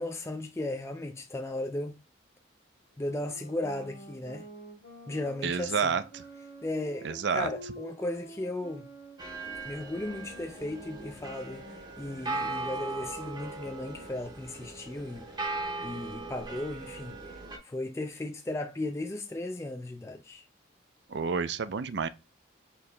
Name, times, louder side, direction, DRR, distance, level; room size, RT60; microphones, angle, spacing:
voice 1, 0.0-2.0 3.0-4.5 5.1-5.9 6.6-8.8 9.6-15.3 15.8-20.4, left 1 dB, 15° left, 0.3 m, -36 dB
sound 1, 3.0-13.0, right 1 dB, 60° left, 1.5 m, -49 dB
voice 2, 5.4-6.2 7.0-7.5 21.1-22.1, right 6 dB, 65° right, 0.4 m, -29 dB
sound 2, 9.2-17.6, right 2 dB, 20° right, 0.7 m, -39 dB
4.5 x 2.8 x 3.2 m
head